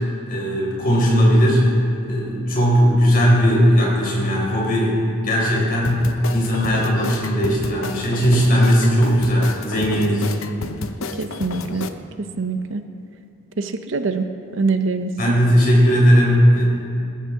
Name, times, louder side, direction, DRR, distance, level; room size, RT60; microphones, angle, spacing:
voice 1, 0.3-1.6 2.0-6.0 6.3-10.3 15.2-16.6, equal, 40° left, -4 dB, 4.3 m, -17 dB
sound 1, 5.8-11.9, left 3 dB, 75° left, 0.7 m, -31 dB
voice 2, 11.2-11.9 12.4-12.8 13.6-14.3 14.5-15.3, right 3 dB, 65° right, 8 dB, 0.7 m, -24 dB
19.5 x 14.0 x 3.7 m, 2.6 s
head